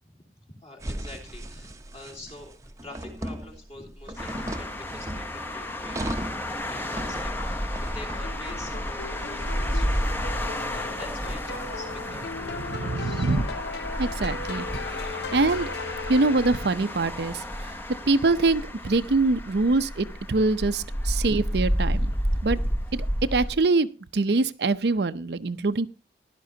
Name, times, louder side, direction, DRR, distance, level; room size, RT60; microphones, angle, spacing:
voice 1, 0.0-10.4 10.7-13.6 22.5-22.8, left 1 dB, 35° left, 2 dB, 3.2 m, -45 dB
sound 1, 0.8-14.5, right 1 dB, 15° right, 0.8 m, -39 dB
sound 2, 4.2-23.6, equal, 10° left, 0.9 m, -31 dB
sound 3, 8.2-17.1, left 4 dB, 70° left, 0.6 m, -38 dB
voice 2, 12.7-13.4 14.0-14.7 15.0-15.7 16.1-17.8 18.1-22.1 22.4-22.6 23.3-25.9, right 3 dB, 70° right, 12 dB, 0.6 m, -24 dB
16.5 x 11.0 x 2.8 m, 0.30 s
head